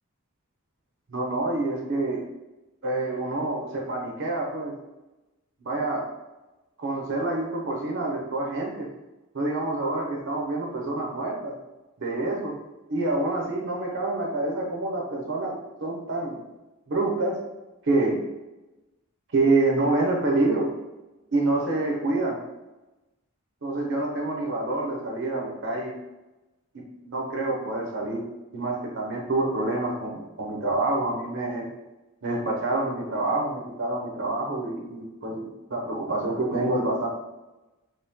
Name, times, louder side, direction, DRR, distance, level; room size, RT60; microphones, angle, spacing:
voice 1, 1.1-2.2 2.8-4.7 5.6-6.0 6.8-8.9 9.3-11.6 12.0-12.5 12.9-16.4 16.9-17.4 17.8-18.2 19.3-20.7 21.3-22.4 23.6-25.9 26.7-28.2 28.5-31.7 32.2-37.1, right 2 dB, 55° right, 0 dB, 0.6 m, -27 dB
3.1 x 2.8 x 3.5 m, 1.0 s
head